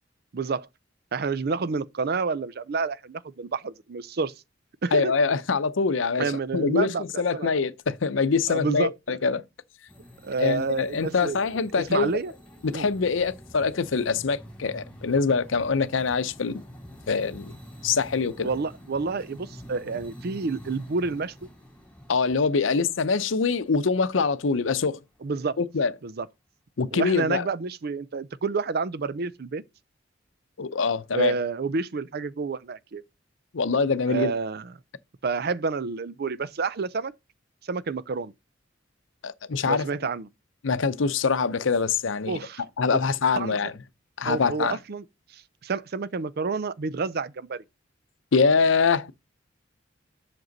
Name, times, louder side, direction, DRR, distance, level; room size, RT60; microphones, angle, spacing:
voice 1, 0.3-0.7 1.1-4.3 4.8-5.1 6.2-7.5 8.5-8.9 10.2-11.4 11.8-12.3 12.7-12.9 18.4-21.3 25.2-25.6 26.0-26.3 26.9-29.6 31.1-33.0 34.1-34.7 35.2-37.1 37.6-38.3 39.7-40.3 42.3-42.6 43.4-43.6 44.2-45.0 45.3-47.6, right 4 dB, 55° right, 0.5 m, -29 dB
voice 2, 4.9-9.4 10.4-12.1 12.6-16.6 17.1-17.5 17.8-18.5 22.1-25.0 25.6-25.9 26.8-27.5 30.6-31.3 33.5-34.3 39.2-39.9 40.6-42.4 42.8-43.7 44.2-44.8 48.3-49.1, left 5 dB, 80° left, 0.6 m, -24 dB
sound 1, 9.9-25.2, equal, 5° left, 3.4 m, -47 dB
7.8 x 6.0 x 4.0 m
head